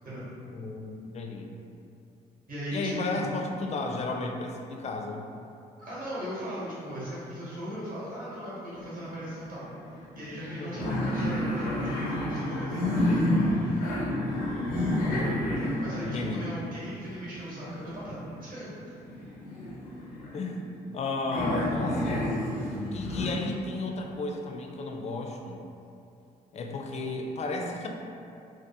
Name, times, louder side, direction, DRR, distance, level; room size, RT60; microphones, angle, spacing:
voice 1, 0.5-1.5 2.7-5.2 10.6-10.9 16.0-16.5 20.3-20.6 20.9-22.3 22.9-25.6 26.5-27.9, left 3 dB, 35° left, 2 dB, 0.4 m, -33 dB
voice 2, 2.5-3.3 5.8-9.7 10.1-13.4 15.0-18.9, equal, 50° right, -9 dB, 1.0 m, -38 dB
sound 1, 8.7-9.5 9.7-9.8 10.2-18.4 19.0-21.0 21.3-23.3, left 1 dB, 90° left, 0.5 m, -30 dB
2.6 x 2.0 x 2.7 m, 2.6 s
hypercardioid pair, 55°, 18 cm